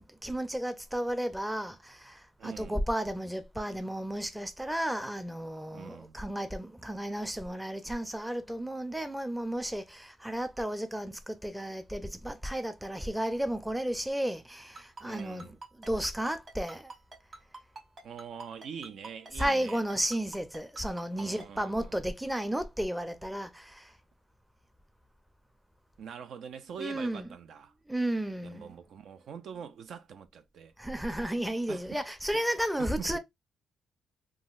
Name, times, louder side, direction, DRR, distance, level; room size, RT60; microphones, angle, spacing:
voice 1, 0.0-15.5 15.7-16.9 19.3-23.9 26.8-27.3 27.9-28.8 30.8-33.2, right 1 dB, 5° right, 0.5 m, -33 dB
voice 2, 2.4-2.8 5.7-6.2 15.0-15.6 18.0-19.8 21.1-22.0 26.0-27.7 28.4-30.7 31.7-31.8 32.8-33.2, right 7 dB, 65° right, 0.4 m, -44 dB
Ringtone, 14.8-21.5, right 3 dB, 40° right, 1.6 m, -45 dB
3.7 x 2.1 x 2.4 m
cardioid pair, 90°, 0 cm